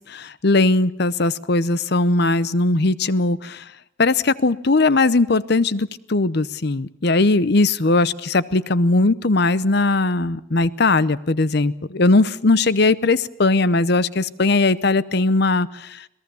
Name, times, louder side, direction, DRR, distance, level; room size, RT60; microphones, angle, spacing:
voice 1, 0.1-3.6 4.0-16.0, left 2 dB, 55° left, 17 dB, 0.8 m, -19 dB
26.5 x 19.0 x 7.0 m, 0.77 s
head